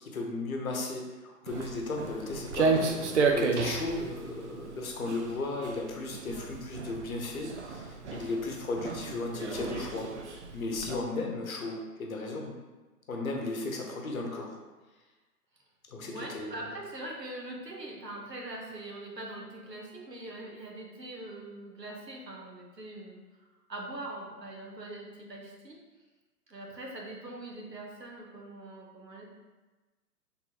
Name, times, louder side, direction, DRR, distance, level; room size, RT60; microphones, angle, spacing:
voice 1, 0.0-12.5 13.1-14.6 15.9-16.7, left 3 dB, 60° left, 1 dB, 0.9 m, -35 dB
Walk footsteps, 1.5-10.9, right 4 dB, 50° right, 0.4 m, -32 dB
voice 2, 16.1-23.2 23.7-25.8 26.5-29.2, right 1 dB, 85° right, -1 dB, 1.1 m, -42 dB
4.4 x 3.5 x 2.8 m, 1.2 s
figure-of-eight pair, 125°, 48 cm